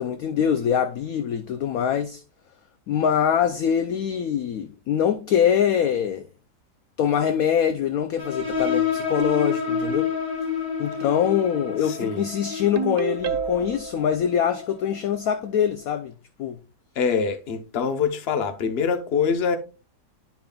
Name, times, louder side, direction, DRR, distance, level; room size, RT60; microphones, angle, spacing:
voice 1, 0.0-2.2 2.9-6.3 7.0-10.1 10.8-16.1 16.4-16.6, left 8 dB, 70° left, 0.9 m, -23 dB
sound 1, 8.2-15.5, left 6 dB, 5° right, 2.3 m, -29 dB
voice 2, 11.8-12.2 17.0-19.6, left 6 dB, 45° left, 0.9 m, -24 dB
Ringtone, 12.8-13.9, right 7 dB, 70° right, 1.1 m, -28 dB
10.5 x 5.1 x 2.3 m
omnidirectional pair, 1.9 m